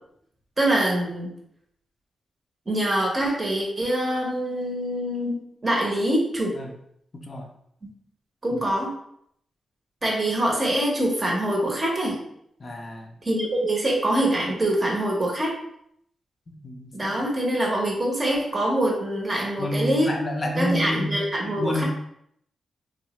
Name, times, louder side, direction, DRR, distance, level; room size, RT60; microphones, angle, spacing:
voice 1, 0.6-1.3 2.7-6.5 8.4-8.9 10.0-12.2 13.2-15.5 16.9-20.1 20.6-21.8, right 1 dB, 30° right, -2 dB, 0.6 m, -24 dB
voice 2, 7.1-7.5 8.5-8.6 12.6-13.1 16.5-17.2 19.6-21.8, left 1 dB, 40° left, 1 dB, 0.5 m, -30 dB
3.1 x 2.0 x 2.9 m, 0.71 s
cardioid pair, 100°, 0 cm